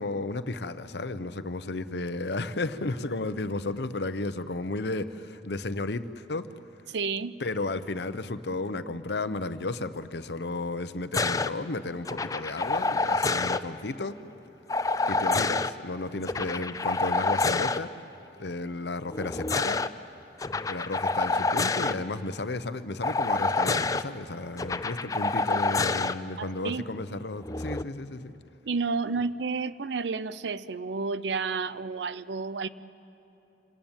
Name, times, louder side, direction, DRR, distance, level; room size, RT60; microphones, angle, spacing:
voice 1, 0.0-6.5 7.4-14.2 15.1-17.9 18.4-19.8 20.7-28.3, left 2 dB, 70° left, 12 dB, 0.8 m, -33 dB
voice 2, 6.9-7.3 26.4-26.8 28.6-32.7, right 4 dB, 80° right, 16 dB, 0.6 m, -31 dB
sound 1, 11.1-11.5 12.1-13.6 14.7-15.7 16.2-17.8 19.1-19.9 20.4-21.9 23.0-24.0 24.6-26.1 27.4-27.8, left 3 dB, 20° left, 0.5 m, -27 dB
27.0 x 18.0 x 9.0 m, 2.9 s
head